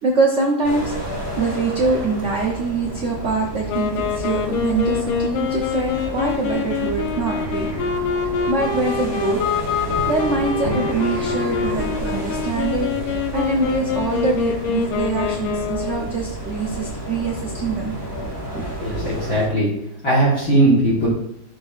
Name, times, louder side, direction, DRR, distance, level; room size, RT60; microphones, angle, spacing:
voice 1, 0.0-0.9 1.4-7.7 8.5-9.4 10.1-17.9 18.5-18.6 19.0-19.1, right 3 dB, 85° right, -1 dB, 0.6 m, -24 dB
sound 1, 0.6-19.5, equal, 15° left, 1.3 m, -30 dB
Wind instrument woodwind instrument, 3.7-16.1, left 6 dB, 75° left, 1.4 m, -25 dB
voice 2, 18.8-19.7 20.0-21.1, right 1 dB, 40° left, -7 dB, 1.9 m, -18 dB
11.5 x 3.8 x 2.4 m, 0.74 s
omnidirectional pair, 2.4 m